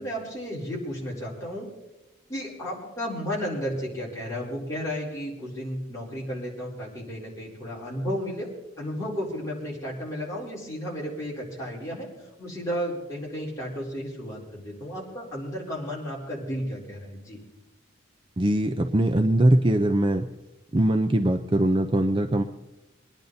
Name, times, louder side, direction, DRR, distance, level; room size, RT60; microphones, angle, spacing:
voice 1, 0.0-1.7 2.3-8.5 8.8-12.1 12.4-17.4, equal, 15° left, -5 dB, 4.2 m, -33 dB
voice 2, 18.4-20.3 20.7-22.4, right 1 dB, 25° right, 6 dB, 0.5 m, -21 dB
23.0 x 10.5 x 4.0 m, 1.0 s
head